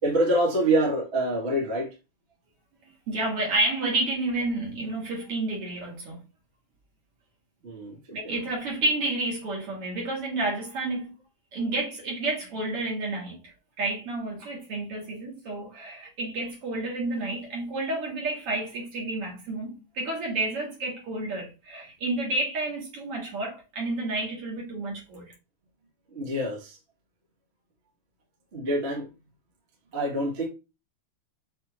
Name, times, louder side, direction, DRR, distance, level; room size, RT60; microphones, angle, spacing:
voice 1, 0.0-1.9 7.6-8.0 8.2-8.3 26.1-26.8 28.5-29.1 29.9-30.5, right 1 dB, 35° right, 1.1 m, -26 dB
voice 2, 3.1-6.2 8.1-11.1 11.5-13.4 13.8-25.3, right 2 dB, 50° right, 2.1 m, -30 dB
6.7 x 2.8 x 2.8 m
omnidirectional pair, 3.9 m